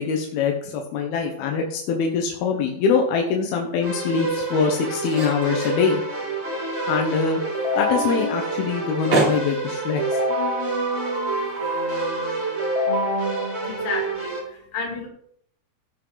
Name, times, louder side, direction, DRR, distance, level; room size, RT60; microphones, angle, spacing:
voice 1, 0.0-6.0 6.9-7.4 7.8-10.0, left 5 dB, 90° left, 2 dB, 3.1 m, -23 dB
sound 1, 2.2-12.6, right 3 dB, 45° right, 4.5 m, -33 dB
Keyboard (musical), 3.8-14.4, right 1 dB, 25° right, 1.6 m, -26 dB
voice 2, 13.6-15.1, left 4 dB, 40° left, 1 dB, 2.6 m, -31 dB
16.5 x 6.1 x 4.0 m, 0.67 s
omnidirectional pair, 4.3 m